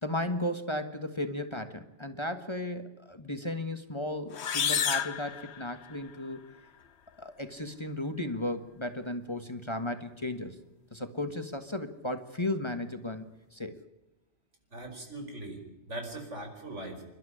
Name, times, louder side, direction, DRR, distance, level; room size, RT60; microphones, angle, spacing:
voice 1, 0.0-6.4 7.2-10.6 10.9-13.3 13.5-13.8, left 1 dB, 25° left, 8 dB, 1.5 m, -35 dB
sound 1, 4.3-6.2, left 8 dB, 65° left, 1.2 m, -31 dB
voice 2, 14.7-17.0, right 2 dB, 80° right, 4 dB, 5.3 m, -40 dB
28.5 x 12.0 x 10.0 m, 1.0 s
omnidirectional pair, 1.2 m